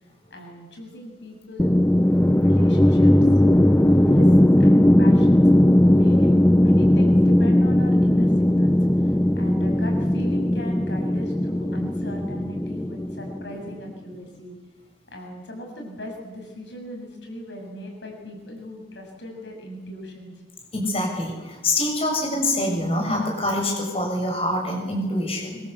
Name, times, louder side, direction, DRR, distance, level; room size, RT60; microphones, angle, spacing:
voice 1, 0.3-1.8 2.1-3.1 4.0-5.4 5.9-14.5 15.1-20.3, equal, 80° left, 2 dB, 7.3 m, -38 dB
sound 1, 1.6-13.7, left 1 dB, 10° left, 0.8 m, -18 dB
voice 2, 20.7-25.6, left 1 dB, 35° left, 0 dB, 7.5 m, -25 dB
25.0 x 24.5 x 8.4 m, 1.2 s
head